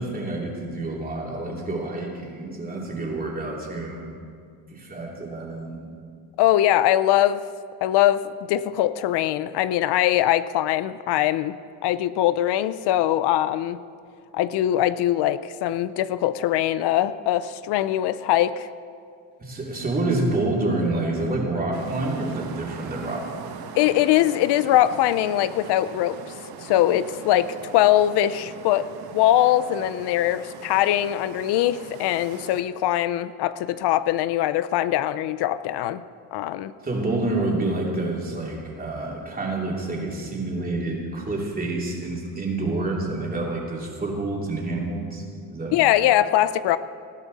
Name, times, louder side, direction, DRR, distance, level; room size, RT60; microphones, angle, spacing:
voice 1, 0.0-4.1 4.7-5.8 19.4-23.6 36.8-45.2 45.5-45.7, right 2 dB, 20° right, -2 dB, 3.1 m, -28 dB
voice 2, 6.4-7.4 7.8-8.2 8.5-13.8 14.3-18.7 23.7-26.2 26.6-36.0 36.3-36.7 45.7-46.8, left 13 dB, 80° left, 14 dB, 0.6 m, -22 dB
sound 1, 21.7-32.6, right 7 dB, 65° right, 1.2 m, -41 dB
19.5 x 14.0 x 4.1 m, 2.2 s
cardioid pair, 130°, 39 cm